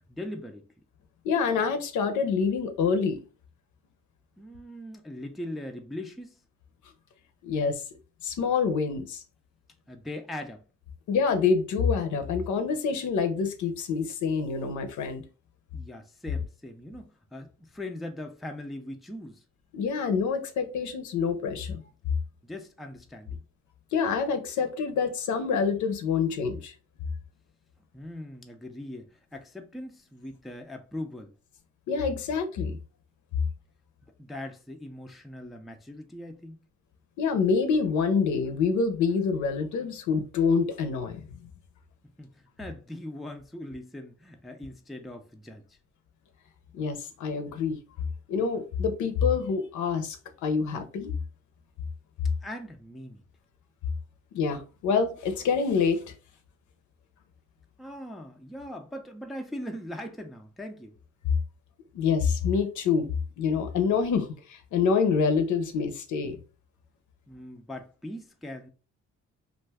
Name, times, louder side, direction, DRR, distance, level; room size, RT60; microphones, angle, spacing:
voice 1, 0.1-0.7 4.4-6.4 9.9-10.6 15.7-19.4 22.4-23.4 27.9-31.3 34.2-36.6 42.2-45.8 52.4-53.2 57.8-61.0 67.3-68.7, left 1 dB, ahead, 0.3 m, -40 dB
voice 2, 1.2-3.2 7.4-7.8 8.2-9.2 11.1-15.2 19.7-21.8 23.9-26.7 31.9-32.8 37.2-41.2 46.7-51.1 54.3-56.1 61.9-63.1 63.4-66.4, left 5 dB, 75° left, 0.6 m, -26 dB
2.4 x 2.2 x 3.3 m
cardioid pair, 90°, 30 cm